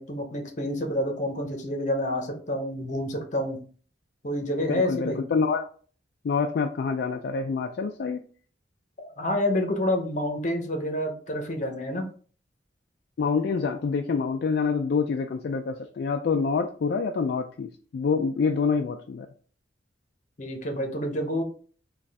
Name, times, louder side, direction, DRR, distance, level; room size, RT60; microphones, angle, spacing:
voice 1, 0.0-3.6 4.2-5.2 9.0-12.0 20.4-21.4, left 1 dB, 40° left, 3 dB, 0.8 m, -28 dB
voice 2, 4.7-5.7 6.2-8.2 13.2-19.3, left 5 dB, 60° left, 4 dB, 0.3 m, -26 dB
4.1 x 2.3 x 3.4 m, 0.43 s
head